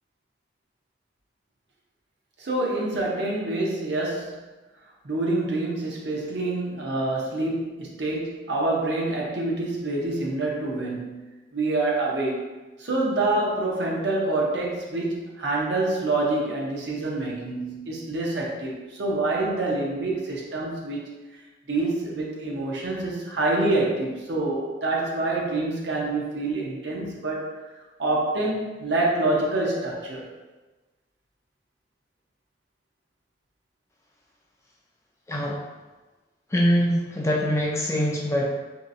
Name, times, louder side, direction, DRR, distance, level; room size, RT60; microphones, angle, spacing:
voice 1, 2.4-4.4 5.0-11.2 11.5-21.1 21.7-27.5 28.0-30.3, right 2 dB, 65° right, -3 dB, 0.7 m, -26 dB
voice 2, 35.3-35.6 36.5-38.6, equal, 15° left, -3 dB, 0.3 m, -23 dB
3.1 x 2.7 x 2.6 m, 1.2 s
head